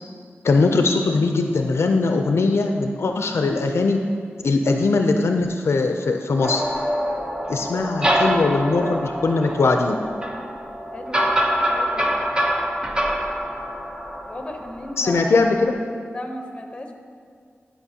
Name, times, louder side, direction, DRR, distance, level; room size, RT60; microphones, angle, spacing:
voice 1, 0.4-4.0 4.4-6.7 7.5-10.0 15.0-15.7, left 3 dB, 75° left, 4 dB, 0.4 m, -20 dB
sound 1, 6.4-15.2, equal, 20° right, 0.8 m, -25 dB
voice 2, 10.9-11.3 11.7-12.2 14.3-15.4 16.1-16.9, left 1 dB, 20° left, 3 dB, 0.8 m, -35 dB
10.5 x 5.7 x 2.8 m, 2.1 s
cardioid pair, 55°, 4 cm